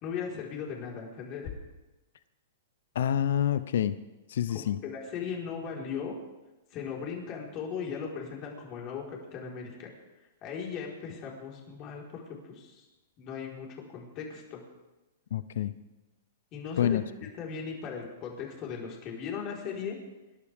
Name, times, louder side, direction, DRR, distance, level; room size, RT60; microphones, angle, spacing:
voice 1, 0.0-1.5 4.5-6.2 6.7-9.9 10.4-12.8 13.2-14.6 16.5-17.0 17.3-20.0, left 6 dB, 35° left, 4.6 m, -38 dB
voice 2, 2.9-4.0 4.3-4.8 15.3-15.7 16.8-17.0, left 10 dB, 70° left, 0.7 m, -27 dB
26.0 x 12.5 x 3.7 m
hypercardioid pair, 130°, 0 cm